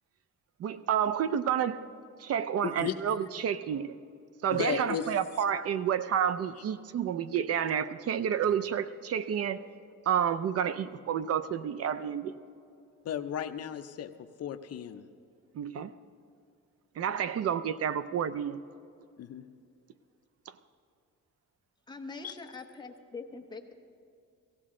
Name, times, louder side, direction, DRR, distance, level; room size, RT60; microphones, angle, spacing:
voice 1, 0.6-1.9 2.2-4.0 4.4-9.6 10.1-12.3 15.5-15.9 17.0-18.6, right 8 dB, 50° right, 0.4 m, -30 dB
voice 2, 2.6-2.9 4.5-5.1 13.0-14.1 14.4-15.0 19.2-19.4 22.2-22.3, left 9 dB, 55° left, 0.6 m, -34 dB
voice 3, 21.9-23.7, left 4 dB, 15° left, 0.8 m, -43 dB
17.0 x 15.5 x 3.7 m
cardioid pair, 165°, 31 cm